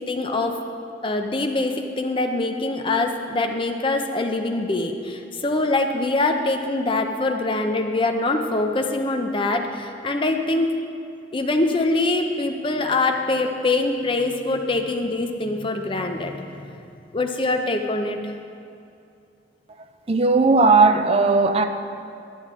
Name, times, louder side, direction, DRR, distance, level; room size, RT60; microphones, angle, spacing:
voice 1, 0.1-0.6 1.0-10.8 11.3-16.7 17.1-18.2, left 2 dB, 30° left, 4 dB, 0.6 m, -24 dB
voice 2, 20.1-21.6, right 3 dB, 30° right, 7 dB, 0.4 m, -16 dB
11.0 x 9.0 x 3.7 m, 2.6 s
head